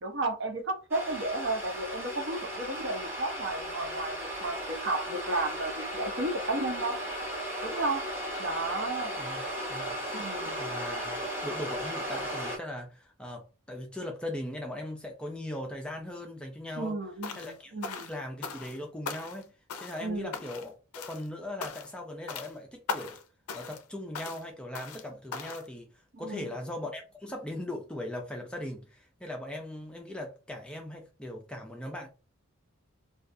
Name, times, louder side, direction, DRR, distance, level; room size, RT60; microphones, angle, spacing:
voice 1, 0.0-7.0 7.6-8.0 8.4-9.2 10.1-10.6 16.8-18.1 20.0-20.3 26.1-26.5, right 2 dB, 55° right, 0.6 m, -33 dB
sound 1, 0.9-12.6, equal, 10° right, 0.7 m, -36 dB
voice 2, 10.5-17.0 17.3-19.5 19.8-20.8 21.1-23.2 23.5-25.9 26.2-32.1, left 1 dB, 5° left, 0.3 m, -39 dB
sound 2, 17.2-17.6 17.8-18.8 19.1-19.4 19.7-20.1 20.3-20.7 20.9-21.3 21.6-22.0 22.3-22.5 22.9-23.2 23.5-23.8 24.2-24.4 24.8-25.0 25.3-25.7, left 5 dB, 85° left, 0.4 m, -38 dB
2.3 x 2.3 x 2.5 m
head